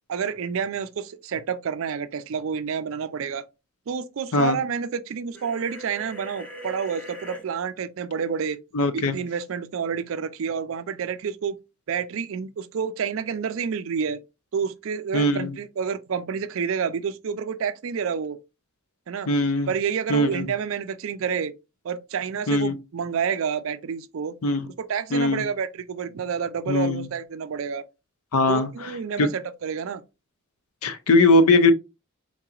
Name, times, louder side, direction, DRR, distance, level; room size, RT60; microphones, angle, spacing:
voice 1, 0.1-3.4 3.9-8.6 8.9-11.6 11.9-14.2 14.5-18.4 19.1-19.3 19.7-21.5 21.8-24.3 24.8-27.9 28.5-30.0, right 6 dB, 65° right, 0.4 m, -29 dB
sound 1, 5.3-7.4, left 1 dB, 5° left, 0.8 m, -40 dB
voice 2, 8.7-9.2 15.1-15.5 19.3-19.7 20.1-20.5 22.5-22.7 24.4-24.7 25.1-25.4 26.7-27.1 28.3-28.9 29.2-29.3 30.8-31.7, left 2 dB, 85° left, 0.6 m, -20 dB
3.9 x 2.8 x 2.4 m
head